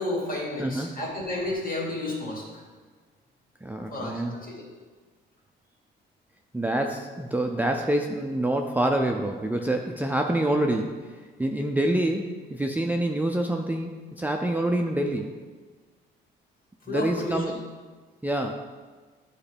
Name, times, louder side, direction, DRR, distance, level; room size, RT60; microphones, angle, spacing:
voice 1, 0.0-2.6 3.9-4.7 16.9-17.6, left 2 dB, 45° left, -3 dB, 2.3 m, -32 dB
voice 2, 3.6-4.4 6.5-15.3 16.9-17.5 18.2-18.5, right 1 dB, 10° right, 2 dB, 0.5 m, -26 dB
9.6 x 4.4 x 3.5 m, 1.4 s
cardioid pair, 90°, 20 cm